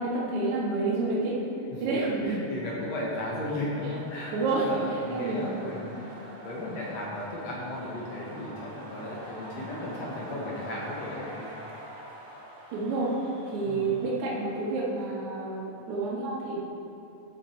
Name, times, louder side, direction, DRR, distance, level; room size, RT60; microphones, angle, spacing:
voice 1, 0.0-1.4 1.8-2.5 4.3-6.1 12.7-13.1 13.4-16.6, right 3 dB, 60° right, -6 dB, 2.8 m, -29 dB
sound 1, 2.1-15.9, right 1 dB, 40° right, 2.6 m, -46 dB
voice 2, 2.2-5.9 6.4-11.5 13.7-13.9, left 1 dB, 60° left, -4 dB, 1.9 m, -35 dB
14.0 x 6.5 x 4.4 m, 2.7 s
omnidirectional pair, 4.1 m